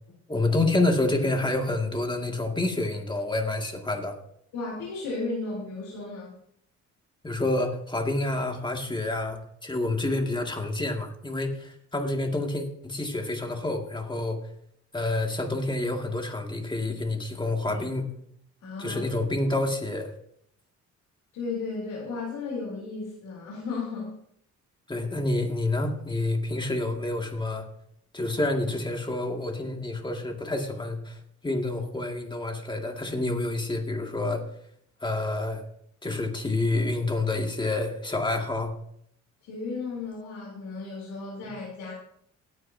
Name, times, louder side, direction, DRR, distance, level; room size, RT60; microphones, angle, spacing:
voice 1, 0.3-4.2 7.2-14.4 14.9-18.2 18.8-20.1 24.9-27.7 28.1-31.2 31.4-34.4 35.0-35.6 36.0-38.7, left 2 dB, 15° left, 2 dB, 2.3 m, -28 dB
voice 2, 4.5-6.3 17.7-17.8 18.6-19.0 21.3-24.1 39.4-41.9, left 3 dB, 85° left, -4 dB, 3.7 m, -34 dB
17.5 x 9.7 x 2.8 m, 0.70 s
cardioid pair, 90°, 30 cm